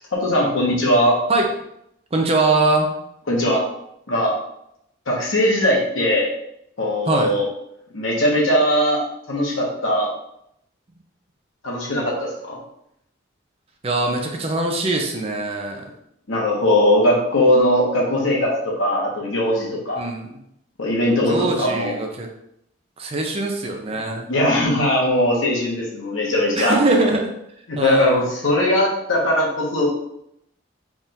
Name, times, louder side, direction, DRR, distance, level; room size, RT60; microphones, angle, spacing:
voice 1, 0.1-1.2 3.3-3.6 4.1-4.3 5.1-6.3 6.8-7.4 7.9-9.0 9.3-10.1 11.6-12.6 16.3-20.0 20.8-21.9 24.3-26.8 27.7-29.9, left 1 dB, 75° left, -3 dB, 1.2 m, -19 dB
voice 2, 2.1-2.9 7.1-7.3 13.8-15.8 20.0-20.3 21.3-22.3 23.0-24.3 26.6-27.3 27.8-28.2, right 2 dB, 30° right, 2 dB, 0.5 m, -22 dB
3.6 x 2.5 x 4.2 m, 0.77 s
head